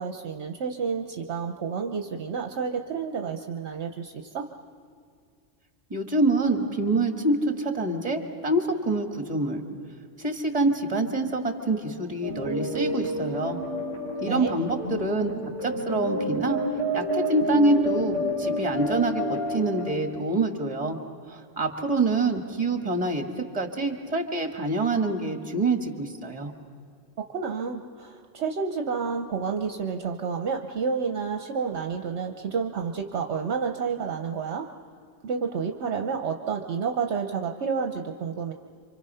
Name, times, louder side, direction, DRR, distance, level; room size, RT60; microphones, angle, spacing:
voice 1, 0.0-4.4 14.3-14.6 27.3-34.7 35.2-38.5, right 6 dB, 65° right, 4 dB, 1.1 m, -30 dB
voice 2, 5.9-9.6 10.2-13.6 14.2-15.3 15.6-16.6 16.9-21.0 21.3-23.2 23.5-26.5, right 2 dB, 30° right, 5 dB, 1.9 m, -26 dB
sound 1, 12.2-19.9, equal, 75° left, 5.8 m, -29 dB
28.0 x 25.5 x 5.6 m, 2.2 s
omnidirectional pair, 1.3 m